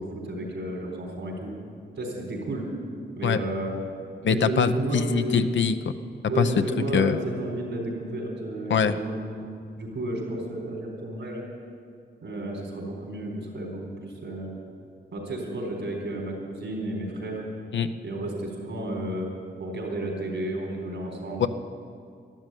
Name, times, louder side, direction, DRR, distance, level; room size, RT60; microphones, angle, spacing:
voice 1, 0.0-1.5 2.0-2.7 3.2-3.8 4.3-5.4 6.3-11.4 12.2-14.6 15.1-17.4 18.0-19.3 19.6-21.4, right 1 dB, 80° right, 0 dB, 4.1 m, -32 dB
voice 2, 4.2-5.8 6.4-6.5 6.9-7.2 8.7-9.0 17.7-17.9 21.4-21.5, left 7 dB, 80° left, 10 dB, 0.7 m, -23 dB
12.0 x 12.0 x 9.2 m, 2.3 s
cardioid pair, 75°, 19 cm